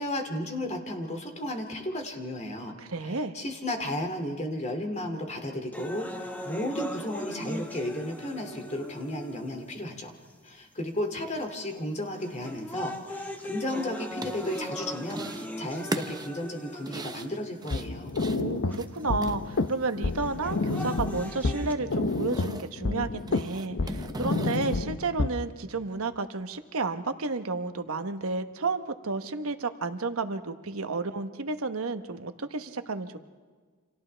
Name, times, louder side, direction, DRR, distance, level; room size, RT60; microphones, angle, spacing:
voice 1, 0.0-2.7 3.0-10.1 10.4-18.1, left 1 dB, 35° left, 4 dB, 2.5 m, -34 dB
voice 2, 2.8-3.4 18.4-33.2, right 3 dB, 70° right, 9 dB, 1.1 m, -32 dB
sound 1, 5.7-9.7 10.5-10.6 11.4-11.7 12.2-17.7 18.7-18.8 20.2-21.7, equal, 10° left, 1.4 m, -39 dB
sound 2, 14.1-14.7 15.1-15.5 15.8-20.0 20.3-21.3 21.6-22.7 23.2-24.8, right 2 dB, 20° right, 0.8 m, -39 dB
sound 3, 17.7-25.3, left 3 dB, 60° left, 0.7 m, -30 dB
30.0 x 27.0 x 3.4 m, 1.5 s
head